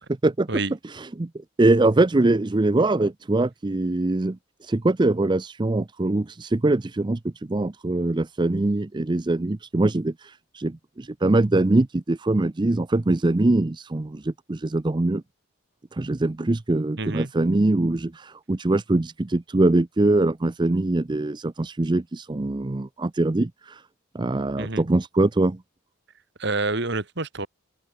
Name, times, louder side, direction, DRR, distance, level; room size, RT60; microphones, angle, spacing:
voice 1, 0.9-1.3 1.6-7.2 7.5-15.2 15.9-23.8 24.1-25.6, right 2 dB, 20° right, 0.5 m, -23 dB
voice 2, 17.0-17.3 24.6-24.9 26.4-27.5, right 3 dB, 55° right, 2.3 m, -27 dB
open air
head